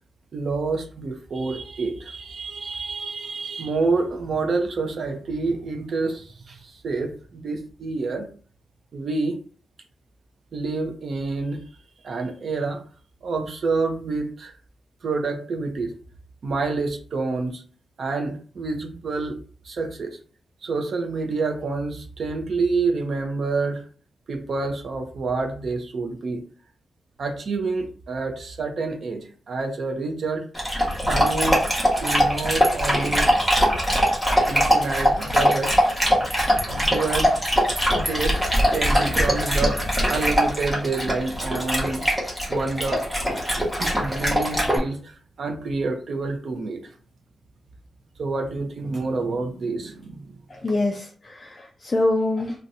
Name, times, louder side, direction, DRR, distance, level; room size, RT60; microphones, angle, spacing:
voice 1, 0.3-8.3 8.9-9.4 10.5-11.6 12.0-12.8 13.2-14.5 15.0-15.9 16.4-17.6 18.0-19.4 19.6-20.2 20.6-23.9 24.3-26.4 27.2-30.5 31.1-31.6 32.0-33.3 33.7-33.9 34.5-36.0 36.3-36.4 36.7-37.5 37.9-38.4 38.7-42.1 42.5-43.0 43.6-46.9 48.2-50.3, right 3 dB, 50° right, 5 dB, 0.6 m, -28 dB
Dog, 30.5-44.8, equal, 5° right, 0.9 m, -22 dB
voice 2, 50.6-52.6, left 2 dB, 25° left, 0 dB, 0.4 m, -25 dB
2.6 x 2.2 x 4.0 m, 0.42 s
wide cardioid pair, 165°, 0 cm